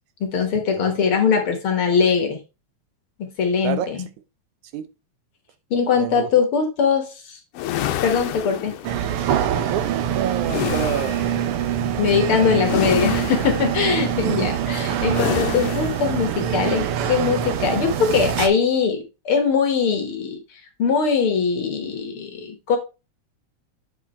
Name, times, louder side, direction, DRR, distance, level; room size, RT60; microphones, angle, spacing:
voice 1, 0.2-2.4 3.2-4.0 5.7-7.4 8.0-8.7 12.0-20.4 20.8-22.8, left 6 dB, 55° left, 1.8 m, -21 dB
voice 2, 3.6-4.1 4.7-4.9 6.0-6.3 9.7-11.3 12.4-12.7, right 10 dB, 90° right, 2.3 m, -29 dB
sound 1, 7.5-9.2 10.5-11.4 12.6-13.7 15.1-16.1, left 12 dB, 70° left, 1.7 m, -28 dB
sound 2, 8.8-18.5, right 9 dB, 70° right, 1.5 m, -24 dB
7.9 x 4.8 x 4.2 m
omnidirectional pair, 3.3 m